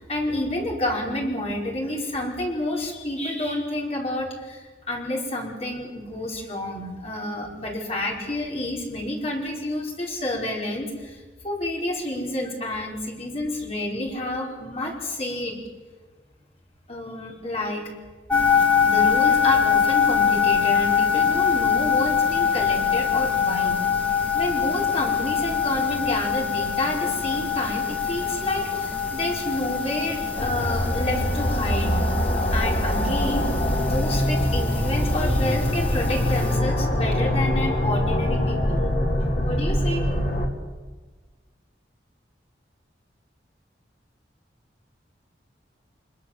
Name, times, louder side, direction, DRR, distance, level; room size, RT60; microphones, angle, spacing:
voice 1, 0.0-15.5 16.9-17.9 18.8-23.8 24.3-32.2 32.5-33.5 33.9-38.8 39.4-40.1, left 1 dB, 35° left, -1 dB, 5.0 m, -29 dB
sound 1, 18.3-36.6, left 7 dB, 10° left, 1.4 m, -24 dB
sound 2, 30.3-40.5, left 1 dB, 50° left, 2.7 m, -23 dB
24.5 x 22.5 x 7.6 m, 1.3 s
head